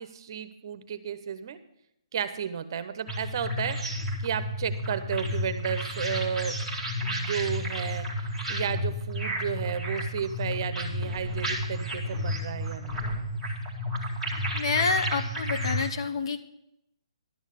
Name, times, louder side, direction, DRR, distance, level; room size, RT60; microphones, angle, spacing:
voice 1, 0.0-1.6 2.1-6.5 7.0-13.0, right 8 dB, 45° right, 11 dB, 0.8 m, -33 dB
sound 1, 3.1-15.9, equal, 5° left, 1.7 m, -31 dB
voice 2, 14.5-16.4, left 4 dB, 50° left, 9 dB, 0.9 m, -28 dB
11.5 x 6.4 x 6.5 m, 0.79 s
hypercardioid pair, 155°, 3 cm